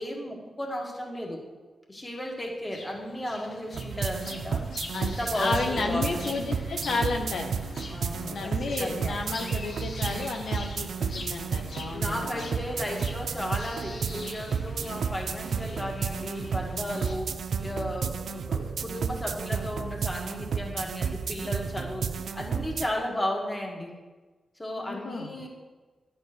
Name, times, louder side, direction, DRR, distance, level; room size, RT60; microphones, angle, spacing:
voice 1, 0.0-1.4 1.9-4.7 5.0-6.2 7.9-9.2 11.9-24.0 24.6-25.5, left 1 dB, 20° left, 0 dB, 1.7 m, -34 dB
sound 1, 2.7-17.1, left 3 dB, 65° left, 1.1 m, -43 dB
sound 2, 3.7-22.9, right 6 dB, 80° right, 0.4 m, -32 dB
voice 2, 4.9-7.5 8.3-12.5 12.8-12.9 24.8-25.5, left 3 dB, 85° left, 3 dB, 0.8 m, -32 dB
10.0 x 4.3 x 6.4 m, 1.3 s
wide cardioid pair, 95°, 0 cm